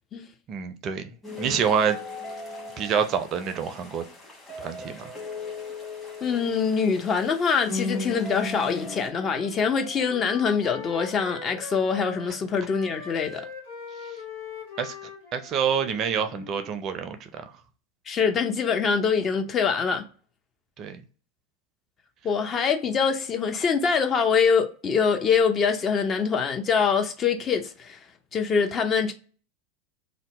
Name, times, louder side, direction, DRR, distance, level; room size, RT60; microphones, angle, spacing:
voice 1, 0.5-2.0 2.8-4.1 4.6-5.1 14.0-14.2 14.8-17.5 20.8-21.0, right 7 dB, 40° right, 0.4 m, -27 dB
sound 1, 1.2-9.1, left 3 dB, 10° left, 1.1 m, -37 dB
voice 2, 6.2-13.5 18.1-20.0 22.2-28.0 28.3-29.1, left 6 dB, 30° left, 0.5 m, -24 dB
Wind instrument woodwind instrument, 8.6-12.4 12.6-16.8, left 5 dB, 70° left, 1.1 m, -41 dB
2.7 x 2.1 x 4.0 m
figure-of-eight pair, 85°, 0 cm